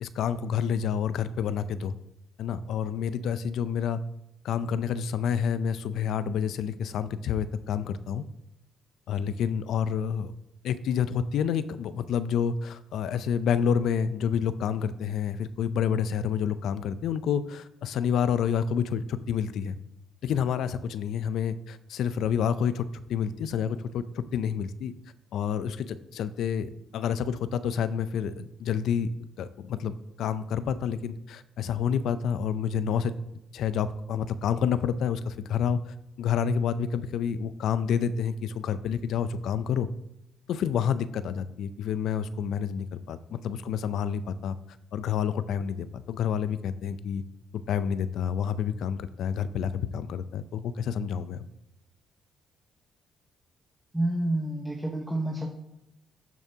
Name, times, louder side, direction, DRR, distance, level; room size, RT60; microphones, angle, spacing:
voice 1, 0.0-1.9 2.4-4.0 4.4-8.2 9.1-10.3 10.6-19.8 20.2-24.9 25.3-29.1 29.4-33.1 33.5-39.9 40.5-44.6 44.9-47.2 47.5-51.4, left 7 dB, 75° left, 14 dB, 0.5 m, -29 dB
voice 2, 53.9-55.5, right 1 dB, 10° right, 2 dB, 0.9 m, -28 dB
12.5 x 7.0 x 2.8 m, 0.87 s
cardioid pair, 90°, 0 cm